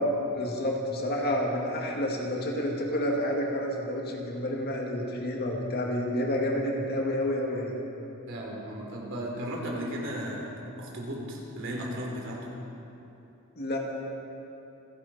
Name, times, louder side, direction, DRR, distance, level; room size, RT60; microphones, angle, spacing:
voice 1, 0.0-7.7 13.6-13.8, left 1 dB, 45° left, -1 dB, 2.2 m, -29 dB
voice 2, 8.3-10.5 10.8-12.5, equal, 60° right, -2 dB, 3.4 m, -35 dB
27.0 x 11.0 x 4.3 m, 3.0 s
head